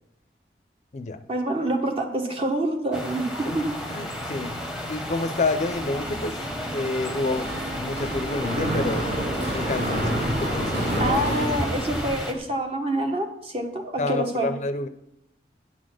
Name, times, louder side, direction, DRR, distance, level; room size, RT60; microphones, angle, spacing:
voice 1, 1.3-3.3 3.5-3.6 11.0-14.5, right 1 dB, 35° right, 3 dB, 1.1 m, -26 dB
sound 1, 2.9-12.3, left 1 dB, 5° right, 0.9 m, -33 dB
Bus, 3.4-11.8, right 2 dB, 55° right, 0.5 m, -39 dB
voice 2, 3.9-4.6 4.9-6.4 6.7-9.1 9.5-10.1 10.4-11.2 14.0-14.9, left 3 dB, 40° left, 9 dB, 0.5 m, -28 dB
Mechanisms, 7.2-12.4, right 1 dB, 75° right, 2.4 m, -29 dB
9.2 x 4.1 x 6.4 m, 0.82 s
head